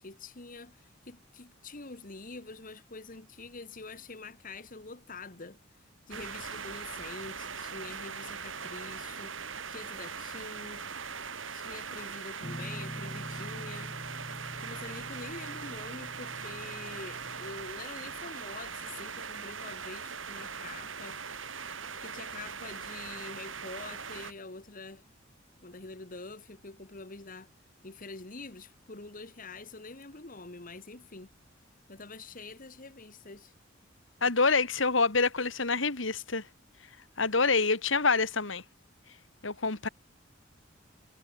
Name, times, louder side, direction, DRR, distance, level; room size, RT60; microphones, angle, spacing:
voice 1, 0.0-5.6 6.1-9.3 9.7-10.8 11.5-13.9 14.6-21.7 22.0-25.0 25.6-27.5 27.8-31.3 31.9-33.5, left 3 dB, 45° left, 1.8 m, -46 dB
sound 1, 6.1-24.3, right 6 dB, 90° right, 7.9 m, -41 dB
Guitar, 12.4-17.7, equal, 25° left, 2.8 m, -44 dB
voice 2, 34.2-36.4 37.2-38.6 39.4-39.9, left 4 dB, 75° left, 2.6 m, -26 dB
head